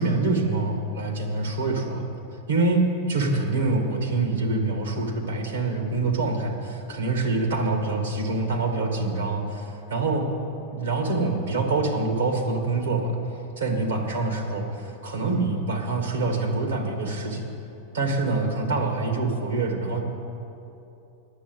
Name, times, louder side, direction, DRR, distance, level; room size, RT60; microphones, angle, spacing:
voice 1, 0.0-2.1 2.5-10.3 10.7-13.2 13.6-17.5 17.9-20.0, right 3 dB, 85° right, 3 dB, 1.6 m, -25 dB
9.8 x 7.0 x 7.8 m, 2.9 s
hypercardioid pair, 100°, 0 cm